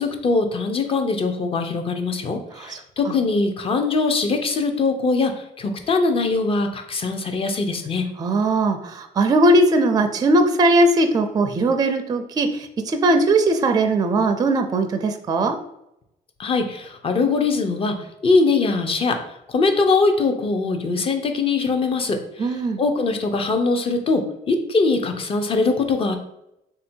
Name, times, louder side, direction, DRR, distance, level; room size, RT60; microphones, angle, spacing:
voice 1, 0.0-8.1 16.4-18.0 18.2-19.2 19.5-26.2, left 3 dB, 35° left, 6 dB, 0.6 m, -22 dB
voice 2, 8.2-15.6 22.4-22.8, right 2 dB, 25° right, 7 dB, 0.4 m, -19 dB
3.5 x 2.7 x 4.4 m, 0.83 s
cardioid pair, 110°, 17 cm